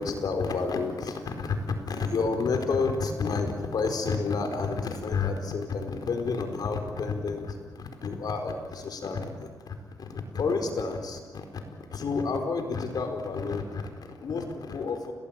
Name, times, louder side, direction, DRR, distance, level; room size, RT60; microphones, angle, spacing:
voice 1, 0.0-15.1, left 4 dB, 70° left, 5 dB, 4.5 m, -30 dB
30.0 x 19.0 x 9.0 m, 1.5 s
cardioid pair, 100°, 7 cm